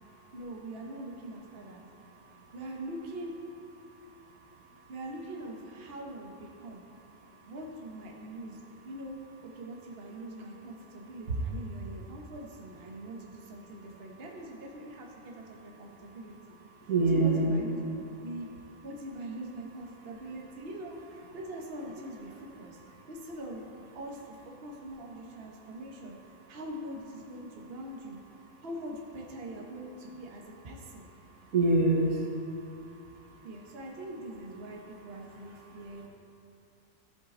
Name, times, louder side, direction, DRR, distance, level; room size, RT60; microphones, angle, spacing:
voice 1, 0.3-1.8 2.5-3.3 4.9-6.8 7.5-8.6 8.8-9.2 9.4-16.6 17.1-18.5 18.8-22.8 23.1-23.7 23.9-24.4 24.6-26.2 26.5-28.2 28.6-31.1 33.4-36.0, right 1 dB, 50° right, -1 dB, 1.3 m, -42 dB
voice 2, 16.9-17.6 31.5-32.3 35.7-35.8, right 2 dB, 85° right, -1 dB, 1.6 m, -25 dB
14.5 x 5.3 x 4.3 m, 2.8 s
omnidirectional pair, 1.4 m